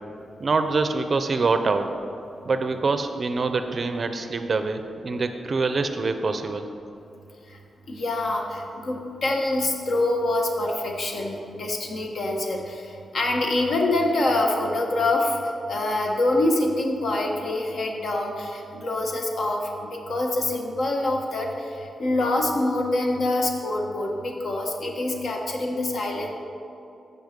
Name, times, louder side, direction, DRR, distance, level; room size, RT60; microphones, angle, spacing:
voice 1, 0.4-1.9 2.5-6.7, right 3 dB, 40° right, 8 dB, 0.5 m, -25 dB
voice 2, 7.9-26.3, left 2 dB, 60° left, 1 dB, 1.4 m, -25 dB
14.0 x 5.5 x 5.2 m, 2.7 s
wide cardioid pair, 145°, 0 cm